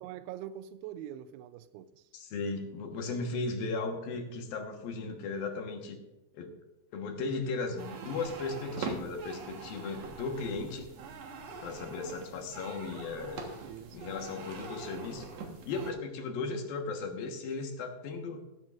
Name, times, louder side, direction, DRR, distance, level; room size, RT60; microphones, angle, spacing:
voice 1, 0.0-2.1 10.6-10.9 13.6-14.2, right 11 dB, 85° right, 12 dB, 2.5 m, -44 dB
voice 2, 2.1-6.0 6.3-6.6 6.9-10.9 11.6-13.5 13.9-15.3 15.7-18.4, left 3 dB, 70° left, 4 dB, 2.9 m, -36 dB
sound 1, 7.8-15.9, right 4 dB, 60° right, 1.8 m, -43 dB
15.5 x 13.5 x 2.5 m, 0.92 s
omnidirectional pair, 4.7 m